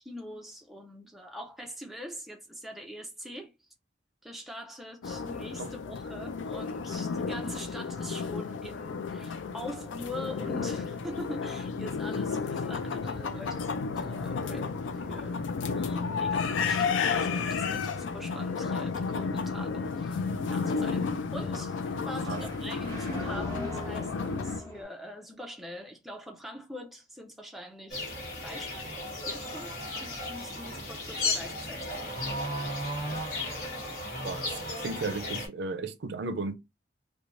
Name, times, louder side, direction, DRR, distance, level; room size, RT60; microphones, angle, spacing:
voice 1, 0.0-3.5 4.2-15.4 15.7-20.2 20.5-28.1 28.4-28.9 29.3-32.1, equal, ahead, 0.4 m, -43 dB
sound 1, 5.0-24.6, left 5 dB, 90° left, 0.4 m, -32 dB
sound 2, 12.7-24.8, left 1 dB, 15° left, 1.0 m, -45 dB
sound 3, 27.9-35.5, left 2 dB, 45° left, 1.2 m, -35 dB
voice 2, 34.8-36.6, right 3 dB, 70° right, 0.4 m, -34 dB
3.0 x 2.2 x 2.5 m
head